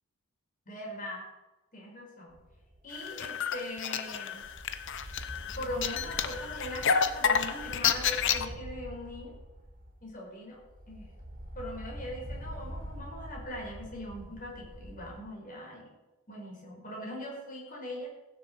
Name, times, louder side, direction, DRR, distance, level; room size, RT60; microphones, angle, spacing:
voice 1, 0.7-1.3 1.7-2.3 2.8-4.4 5.5-9.3 10.0-10.6 10.9-11.1 11.5-15.8 16.3-18.1, left 1 dB, 40° left, -2 dB, 5.2 m, -40 dB
sound 1, 2.3-3.1 3.4-3.6 4.4-10.2 10.5-15.2, equal, 40° right, 2.8 m, -45 dB
sound 2, 3.0-8.5, left 7 dB, 60° left, 0.9 m, -30 dB
16.0 x 7.3 x 8.0 m, 1.1 s
head